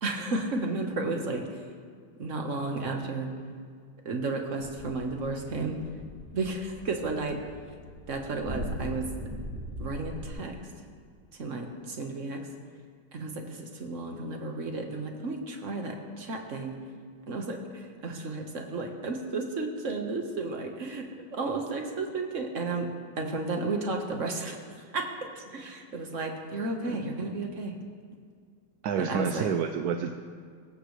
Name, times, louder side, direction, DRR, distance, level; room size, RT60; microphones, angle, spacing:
voice 1, 0.0-1.4 2.2-3.3 4.0-5.7 6.3-7.4 8.1-9.1 9.8-10.6 11.4-12.4 13.1-16.7 17.3-21.0 21.3-22.9 23.2-24.6 24.9-25.0 25.4-27.8 29.0-29.5, right 3 dB, 40° right, 2 dB, 1.7 m, -33 dB
sound 1, 4.6-10.3, equal, 20° right, 4.3 m, -40 dB
voice 2, 28.8-30.1, right 6 dB, 65° right, 6 dB, 1.0 m, -29 dB
23.0 x 14.0 x 3.3 m, 2.1 s
omnidirectional pair, 2.1 m